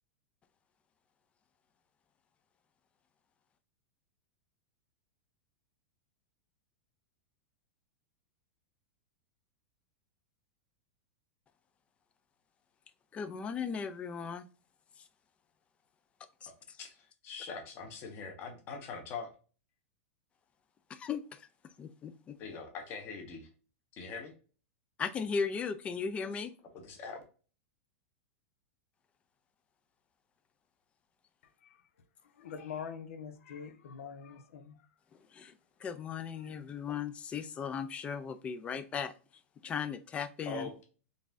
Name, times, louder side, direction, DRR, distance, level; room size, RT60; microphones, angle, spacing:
voice 1, 13.1-14.5 15.0-15.1 16.4-16.8 20.9-22.4 25.0-26.5 35.3-35.5 35.8-39.1 39.6-40.7, left 6 dB, 15° left, 13 dB, 0.3 m, -37 dB
voice 2, 16.8-19.3 22.4-23.5 23.9-24.3 26.2-26.3 26.7-27.2 40.5-40.8, left 4 dB, 30° left, 2 dB, 1.1 m, -42 dB
voice 3, 31.4-31.9 32.2-35.0 36.4-36.6, left 7 dB, 85° left, 9 dB, 0.8 m, -45 dB
4.0 x 3.5 x 2.5 m, 0.36 s
supercardioid pair, 155°, 7 cm